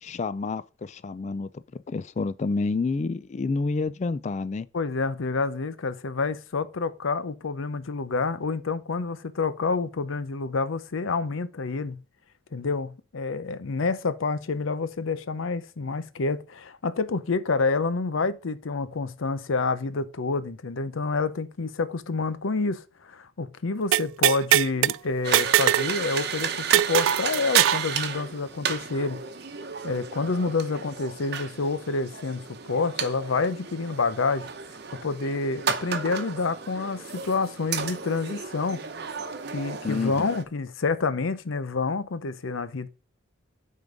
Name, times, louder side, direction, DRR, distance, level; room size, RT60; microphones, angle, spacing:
voice 1, 0.0-4.7 39.8-40.3, left 3 dB, 35° left, 0.3 m, -29 dB
voice 2, 4.7-12.0 12.5-29.2 29.8-34.5 35.0-38.9 39.5-42.9, left 4 dB, 85° left, 0.6 m, -28 dB
sound 1, 23.9-25.0 25.3-25.9 26.2-26.3 26.7-27.9, right 12 dB, 80° right, 0.3 m, -21 dB
sound 2, 25.2-40.4, right 6 dB, 55° right, 0.9 m, -34 dB
9.3 x 3.8 x 5.1 m
head